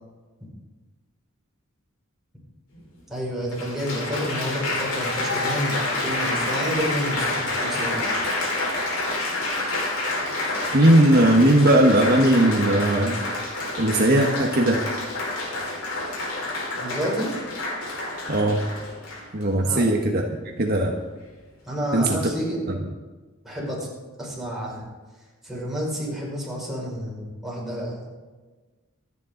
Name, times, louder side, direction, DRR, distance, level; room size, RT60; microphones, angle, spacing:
Applause, 2.7-2.8 3.5-19.4 20.2-20.5, left 2 dB, 70° left, 4.8 m, -28 dB
voice 1, 3.1-8.1 16.8-17.3 19.6-19.8 21.7-22.6 23.4-23.8 24.2-24.8 25.4-28.1, equal, ahead, -6 dB, 5.5 m, -29 dB
voice 2, 10.7-13.2 13.8-14.8 18.3-18.7 19.3-20.2 20.6-21.0 21.9-22.2 22.7-22.8, right 1 dB, 50° right, 1 dB, 1.3 m, -18 dB
25.5 x 9.9 x 3.9 m, 1.3 s
head